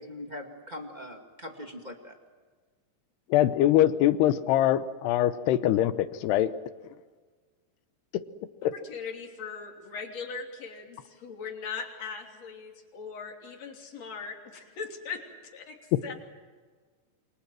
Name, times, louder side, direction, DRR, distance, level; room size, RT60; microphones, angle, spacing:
voice 1, 0.0-2.1, left 1 dB, 25° right, 3 dB, 1.0 m, -41 dB
voice 2, 3.3-6.5 8.6-8.7 15.9-16.0, left 12 dB, 90° left, 13 dB, 3.0 m, -23 dB
voice 3, 8.7-15.2 15.5-16.1, left 5 dB, 45° left, 1 dB, 4.1 m, -39 dB
29.0 x 25.0 x 7.6 m, 1.5 s
omnidirectional pair, 4.6 m